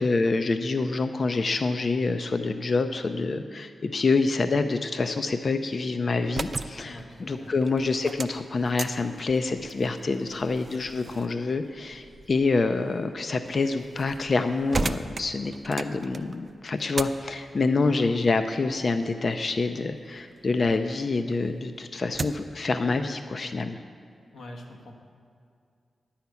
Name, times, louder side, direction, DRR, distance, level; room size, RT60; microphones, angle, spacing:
voice 1, 0.0-23.8, left 3 dB, 50° left, 8 dB, 0.4 m, -26 dB
sound 1, 6.1-20.8 21.2-22.6, right 3 dB, 40° right, 0.4 m, -38 dB
voice 2, 6.8-7.5 10.2-10.5 17.8-18.0 24.3-25.0, left 1 dB, 75° left, 1 dB, 1.5 m, -44 dB
10.5 x 5.7 x 8.2 m, 2.3 s
wide cardioid pair, 90°, 0 cm